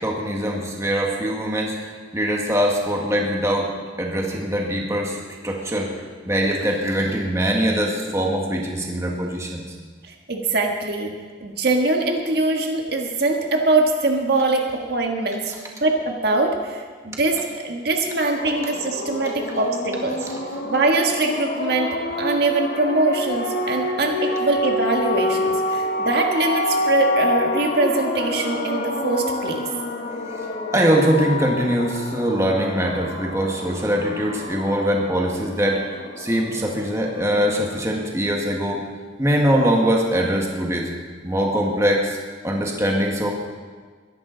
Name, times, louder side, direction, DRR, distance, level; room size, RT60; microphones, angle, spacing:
voice 1, 0.0-3.7 4.0-5.2 5.4-5.9 6.2-9.6 20.3-20.4 30.1-35.8 36.2-38.8 39.2-40.9 41.2-42.2 42.4-43.3, equal, 15° right, -1 dB, 1.7 m, -22 dB
voice 2, 10.1-11.1 11.4-14.6 14.9-15.5 15.8-17.4 17.6-20.2 20.6-21.9 22.2-29.6, right 2 dB, 60° right, 2 dB, 1.6 m, -22 dB
sound 1, 18.4-37.8, left 1 dB, 55° left, 1.5 m, -28 dB
22.0 x 11.0 x 4.0 m, 1.5 s
head